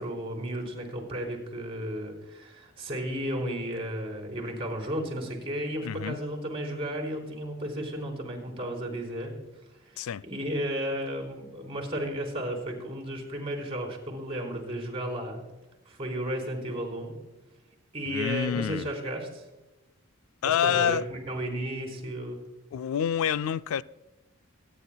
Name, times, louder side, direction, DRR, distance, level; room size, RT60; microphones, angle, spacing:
voice 1, 0.0-9.3 9.9-15.4 15.9-17.2 17.9-19.5 20.6-22.4, equal, 30° right, 3.7 m, -33 dB
voice 2, 5.8-6.2 10.0-10.2 18.1-18.9 20.4-21.1 22.7-23.8, left 8 dB, 85° left, 0.3 m, -27 dB
25.5 x 10.0 x 2.2 m
head